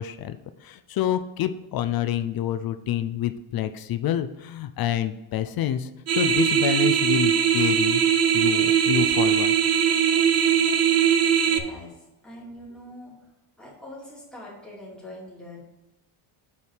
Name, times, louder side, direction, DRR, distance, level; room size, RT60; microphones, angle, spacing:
voice 1, 0.0-8.0 8.3-9.5, left 11 dB, 50° left, 10 dB, 0.5 m, -28 dB
sound 1, 6.1-11.6, right 8 dB, 35° right, 0.5 m, -20 dB
voice 2, 11.4-12.0 12.2-13.1 13.6-15.6, left 1 dB, ahead, -7 dB, 2.7 m, -43 dB
8.4 x 4.6 x 5.0 m, 1.0 s
cardioid pair, 175°, 49 cm